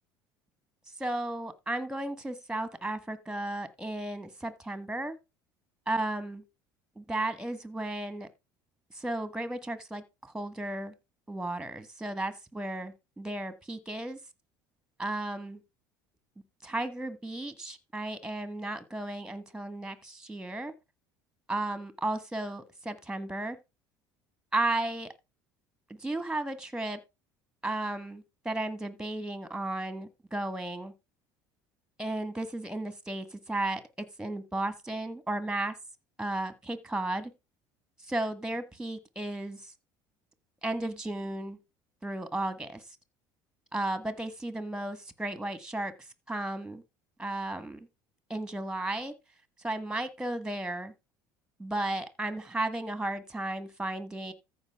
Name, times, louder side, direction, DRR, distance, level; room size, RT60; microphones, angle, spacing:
voice 1, 1.0-5.2 5.9-6.4 7.0-8.3 8.9-10.9 11.3-14.2 15.0-15.6 16.6-20.7 21.5-23.6 24.5-25.1 26.0-27.0 27.6-30.9 32.0-35.8 36.2-37.3 38.1-39.7 40.6-41.6 42.0-42.8 43.7-45.9 46.3-46.8 47.2-47.9 48.3-49.1 49.6-50.9 51.6-54.3, right 2 dB, 5° right, 1.6 m, -34 dB
14.0 x 5.0 x 3.6 m
hypercardioid pair, 75°, 10 cm